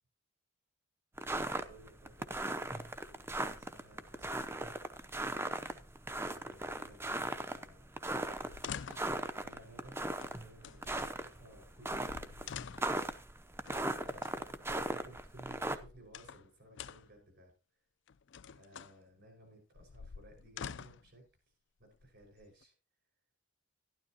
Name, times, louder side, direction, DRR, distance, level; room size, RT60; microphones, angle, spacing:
sound 1, 1.2-15.8, right 2 dB, 10° right, 0.7 m, -38 dB
voice 1, 1.3-4.7 5.3-5.7 6.3-8.8 9.4-13.2 13.9-17.5 18.5-21.3 21.8-22.7, right 1 dB, 55° right, 3 dB, 5.5 m, -59 dB
sound 2, 8.4-9.2 10.2-11.1 11.8-11.9 12.1-13.0 13.7-14.3 15.5-16.5 16.7-17.2 18.1-18.9 19.7-21.1 21.9-22.6, left 7 dB, 60° left, 0.4 m, -47 dB
12.5 x 12.0 x 2.9 m, 0.32 s
head